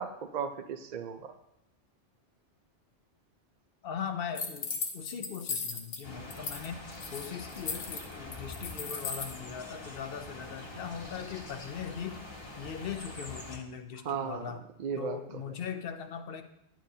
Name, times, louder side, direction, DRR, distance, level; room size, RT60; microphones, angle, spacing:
voice 1, 0.0-1.3 14.0-15.4, right 7 dB, 55° right, 6 dB, 0.5 m, -36 dB
voice 2, 3.8-6.8 7.1-12.2 12.6-14.6 15.0-16.4, left 7 dB, 60° left, 8 dB, 0.8 m, -40 dB
sound 1, 4.3-6.0 6.3-6.7 6.9-9.3, left 5 dB, 85° left, 1.2 m, -36 dB
sound 2, 6.0-13.6, left 2 dB, 25° left, 1.1 m, -45 dB
10.0 x 7.4 x 2.8 m, 0.81 s
omnidirectional pair, 1.2 m